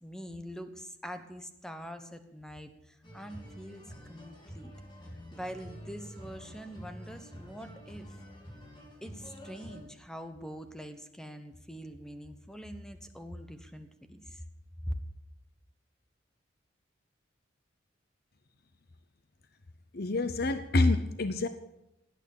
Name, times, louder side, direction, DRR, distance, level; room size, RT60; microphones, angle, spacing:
voice 1, 0.0-4.7 5.3-8.2 9.0-14.4 14.9-15.0, equal, 5° left, 8 dB, 1.2 m, -44 dB
sound 1, 3.0-9.8, equal, 25° left, 3.6 m, -48 dB
voice 2, 19.9-21.5, left 2 dB, 55° left, 11 dB, 0.7 m, -27 dB
17.5 x 9.2 x 7.3 m, 0.88 s
head